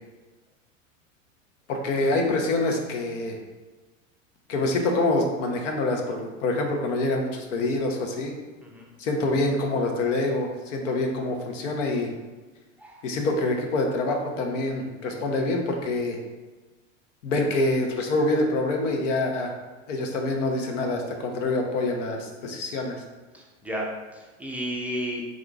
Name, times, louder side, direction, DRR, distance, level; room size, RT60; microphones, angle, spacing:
voice 1, 1.7-3.4 4.5-8.3 9.0-12.1 13.0-16.2 17.2-19.5 19.9-23.0, left 2 dB, 70° left, 3 dB, 0.8 m, -26 dB
voice 2, 23.3-25.2, equal, 5° right, -2 dB, 0.4 m, -33 dB
3.8 x 3.6 x 2.3 m, 1.2 s
hypercardioid pair, 100°, 39 cm